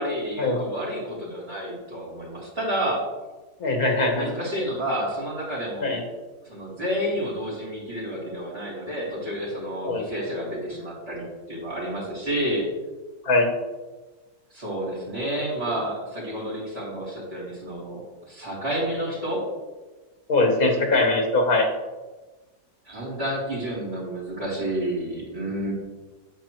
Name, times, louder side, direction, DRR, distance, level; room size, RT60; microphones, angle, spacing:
voice 1, 0.0-3.0 4.1-6.0 6.4-12.7 14.5-18.0 18.3-19.4 22.8-25.7, equal, 40° right, -6 dB, 3.3 m, -30 dB
voice 2, 3.6-4.3 5.8-6.0 9.8-10.0 13.2-13.5 20.3-21.7, left 2 dB, 65° left, 2 dB, 1.8 m, -21 dB
9.1 x 8.5 x 3.1 m, 1.2 s
omnidirectional pair, 1.7 m